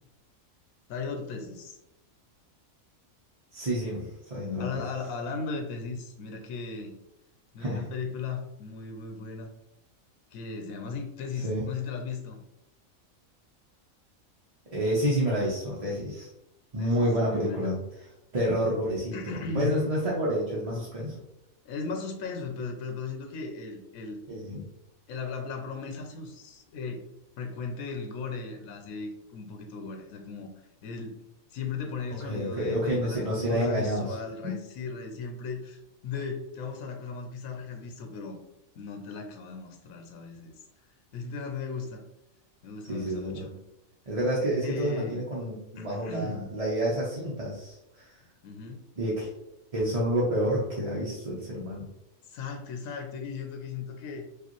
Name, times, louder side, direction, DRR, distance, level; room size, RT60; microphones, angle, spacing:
voice 1, 0.9-1.8 4.6-7.0 7.5-9.5 10.3-12.4 16.8-17.7 19.1-19.7 21.6-24.2 25.1-27.0 27.4-30.5 30.8-31.2 31.5-38.4 38.8-40.5 41.1-42.0 42.6-43.6 44.5-45.3 45.8-46.5 48.4-48.8 52.3-54.2, left 4 dB, 85° left, 4 dB, 1.1 m, -37 dB
voice 2, 3.5-4.8 7.6-7.9 11.4-11.6 14.7-16.3 16.7-17.8 18.3-21.2 24.3-24.7 32.2-34.2 34.4-34.5 42.9-43.5 44.1-48.2 49.0-49.3 49.7-51.9, equal, 35° right, -6 dB, 0.7 m, -29 dB
4.9 x 2.5 x 3.0 m, 0.88 s
omnidirectional pair, 1.4 m